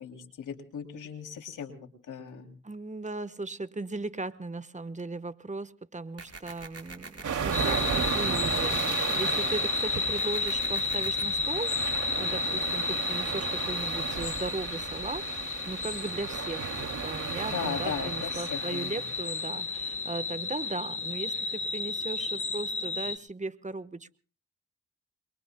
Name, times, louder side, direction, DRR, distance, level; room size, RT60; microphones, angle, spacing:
voice 1, 0.0-2.5 17.5-19.0, left 7 dB, 90° left, 3 dB, 2.9 m, -37 dB
voice 2, 2.6-11.7 12.2-24.2, right 3 dB, 25° right, 14 dB, 1.2 m, -37 dB
sound 1, 6.2-7.2 10.2-11.2, right 4 dB, 55° right, 4.9 m, -44 dB
sound 2, 7.2-19.8, right 6 dB, 80° right, 2.6 m, -35 dB
sound 3, 7.5-23.2, left 4 dB, 45° left, 1.4 m, -32 dB
28.0 x 22.5 x 2.2 m, 0.41 s
cardioid pair, 45°, 30 cm